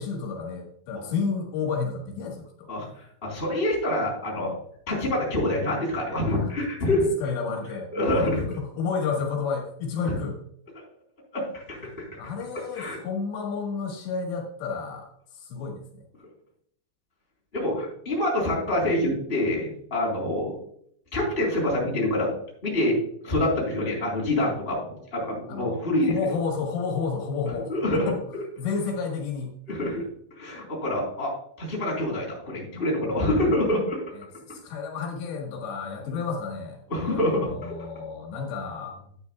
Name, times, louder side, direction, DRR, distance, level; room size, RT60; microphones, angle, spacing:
voice 1, 0.0-2.7 6.1-6.5 7.2-8.3 8.6-10.4 12.2-15.1 15.4-15.9 25.5-28.2 28.6-29.6 34.5-36.8 37.2-39.1, left 5 dB, 80° left, 0 dB, 3.8 m, -31 dB
voice 2, 2.7-4.5 4.9-7.1 7.9-8.4 10.1-10.2 10.7-10.8 11.3-11.8 12.7-13.0 17.5-20.6 21.1-22.3 22.6-23.0 23.2-26.1 27.7-28.1 29.7-30.1 30.4-31.3 31.6-34.0 36.1-36.2 36.9-37.7, left 1 dB, 15° left, -3 dB, 3.5 m, -26 dB
12.0 x 9.0 x 2.3 m, 0.65 s
omnidirectional pair, 5.1 m